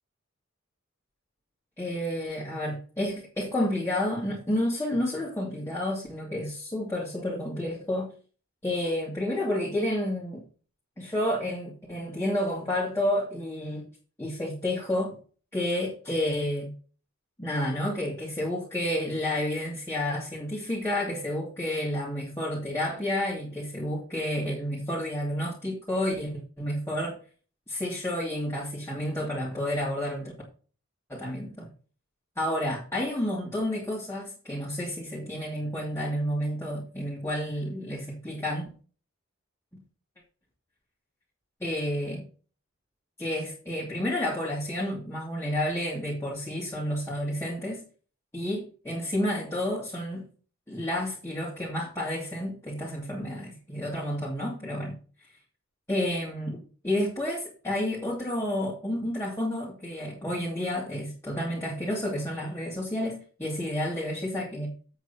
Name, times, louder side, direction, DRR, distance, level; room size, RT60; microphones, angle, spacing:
voice 1, 1.8-8.1 8.6-10.5 11.0-13.8 14.2-15.2 15.5-16.7 17.4-27.2 27.7-30.3 31.1-31.7 32.4-38.7 41.6-42.3 43.2-47.8 48.3-50.3 50.7-55.0 55.9-65.0, left 1 dB, 10° left, 2.7 m, -30 dB
8.1 x 8.1 x 4.4 m
head